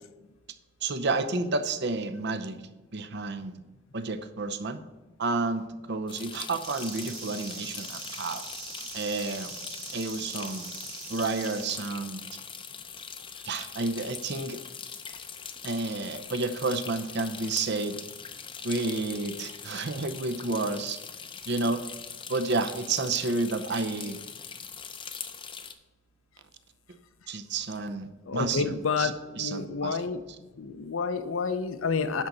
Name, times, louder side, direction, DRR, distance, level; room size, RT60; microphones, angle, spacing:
voice 1, 0.8-2.6 2.9-3.6 3.9-4.8 5.2-8.4 8.9-9.5 9.9-10.7 11.1-12.2 13.5-14.6 15.6-18.0 18.6-21.0 21.5-21.8 22.3-24.2 27.3-28.6 29.0-29.1 29.4-30.0, right 3 dB, 55° right, 10 dB, 0.7 m, -30 dB
sound 1, 6.1-25.7, left 7 dB, 25° left, 0.6 m, -42 dB
sound 2, 6.6-11.7, right 5 dB, 75° right, 3.3 m, -42 dB
voice 2, 28.2-30.2 30.6-32.3, left 5 dB, 70° left, 11 dB, 0.7 m, -29 dB
10.5 x 4.0 x 6.8 m, 1.1 s
head